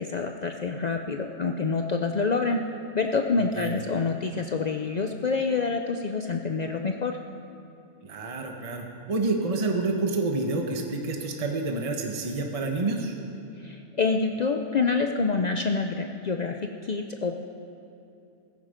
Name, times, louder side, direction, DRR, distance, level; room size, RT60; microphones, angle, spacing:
voice 1, 0.0-2.6 2.9-7.2 13.6-17.4, left 4 dB, 65° left, 4 dB, 0.4 m, -27 dB
voice 2, 8.0-13.1, right 3 dB, 25° right, 2 dB, 1.1 m, -28 dB
16.0 x 14.5 x 5.1 m, 2.7 s
omnidirectional pair, 1.6 m